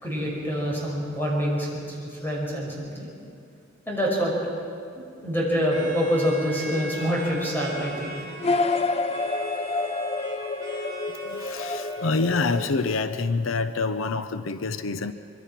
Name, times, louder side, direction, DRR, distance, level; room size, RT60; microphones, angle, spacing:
voice 1, 0.0-3.1 3.9-4.3 4.9-8.2, equal, 10° left, -3 dB, 5.7 m, -26 dB
sound 1, 5.7-12.5, right 2 dB, 20° right, 5.3 m, -40 dB
sound 2, 8.4-13.2, left 3 dB, 30° left, 0.5 m, -28 dB
voice 2, 11.3-15.1, left 3 dB, 85° left, 11 dB, 0.7 m, -26 dB
24.5 x 23.0 x 5.9 m, 2.4 s
head